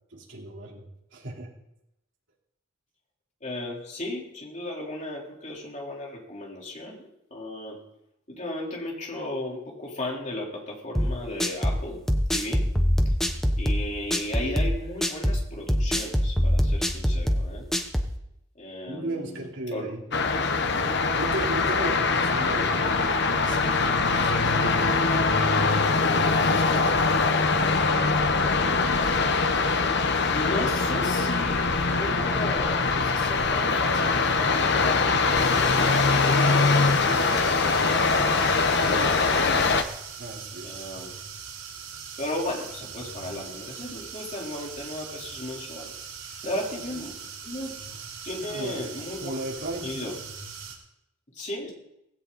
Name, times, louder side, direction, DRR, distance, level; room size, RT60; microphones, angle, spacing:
voice 1, 0.1-1.5 18.9-20.0 20.6-25.6 26.0-28.2 29.4-29.5 40.2-40.7 46.4-46.6 46.9-47.0 48.4-48.9 49.2-50.2, right 1 dB, 60° right, -2 dB, 4.1 m, -37 dB
voice 2, 3.4-7.8 8.3-12.0 12.3-12.7 13.6-17.7 18.6-19.9 29.6-36.7 37.0-39.7 40.6-41.1 42.2-45.9 46.4-47.2 47.4-47.7 48.2-49.3 49.8-50.1 51.3-51.7, left 1 dB, 35° left, -2 dB, 4.0 m, -35 dB
sound 1, 11.0-18.2, equal, ahead, 1.1 m, -24 dB
sound 2, 20.1-39.8, left 4 dB, 55° left, 1.1 m, -23 dB
sound 3, 35.3-50.7, right 6 dB, 80° right, 4.6 m, -40 dB
18.5 x 16.5 x 4.2 m, 0.83 s
head